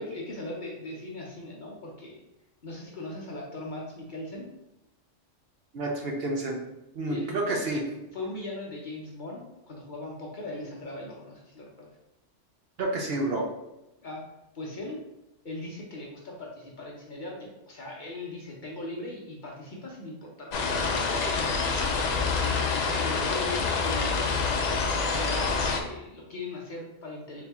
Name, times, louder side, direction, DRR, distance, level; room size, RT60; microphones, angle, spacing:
voice 1, 0.0-2.2 2.6-4.5 7.0-7.6 8.1-9.4 9.7-11.9 14.0-14.2 14.5-15.0 15.4-21.9 23.0-27.4, left 2 dB, 45° left, -2 dB, 0.8 m, -39 dB
voice 2, 5.7-6.6 7.0-7.8 12.8-13.5, right 2 dB, 60° right, 0 dB, 0.8 m, -29 dB
sound 1, 20.5-25.8, left 4 dB, 70° left, 0.4 m, -27 dB
4.1 x 2.7 x 3.4 m, 0.93 s
omnidirectional pair, 1.3 m